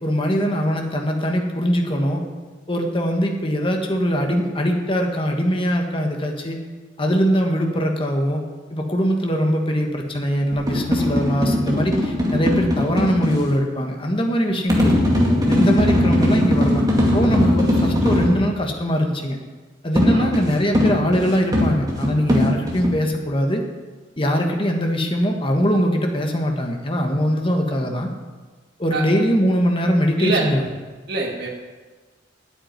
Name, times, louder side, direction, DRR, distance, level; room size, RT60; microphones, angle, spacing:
voice 1, 0.0-2.2 2.7-6.6 7.0-8.4 8.7-14.9 15.5-16.8 17.1-19.4 19.8-23.6 24.2-28.1 28.8-30.6, equal, 30° left, 2 dB, 1.5 m, -21 dB
sound 1, 10.5-13.4 14.7-18.4 20.0-22.9, left 1 dB, 20° right, 2.1 m, -19 dB
voice 2, 30.2-30.5 31.1-31.5, right 3 dB, 55° right, -3 dB, 2.1 m, -24 dB
8.9 x 8.7 x 9.5 m, 1.3 s
head